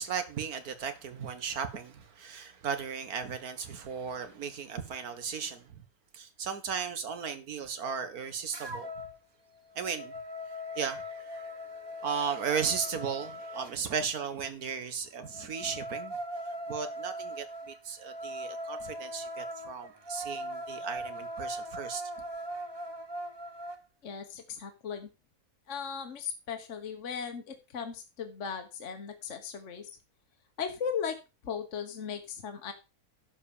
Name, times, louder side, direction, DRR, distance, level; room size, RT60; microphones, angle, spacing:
voice 1, 0.0-5.8 6.1-8.9 9.8-10.2 10.5-16.2 16.7-22.0, right 6 dB, 75° right, 1.8 m, -36 dB
sound 1, 8.5-9.2 9.6-13.8 15.2-23.8, equal, 20° right, 0.7 m, -40 dB
voice 2, 24.0-25.1 25.7-29.9 30.6-31.2 31.4-32.7, left 7 dB, 55° left, 1.4 m, -37 dB
11.0 x 4.7 x 7.0 m
omnidirectional pair, 1.6 m